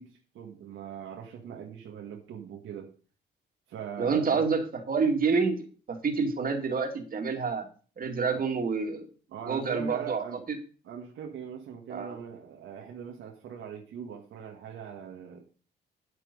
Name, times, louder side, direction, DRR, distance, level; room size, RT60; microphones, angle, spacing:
voice 1, 0.0-2.9 3.7-4.5 8.3-8.5 9.3-10.4 10.9-15.4, right 7 dB, 80° right, 1.8 m, -41 dB
voice 2, 4.0-7.7 8.0-9.1 9.4-10.2 11.9-12.2, right 5 dB, 45° right, 2.4 m, -28 dB
8.7 x 8.4 x 5.4 m
cardioid pair, 90°, 20 cm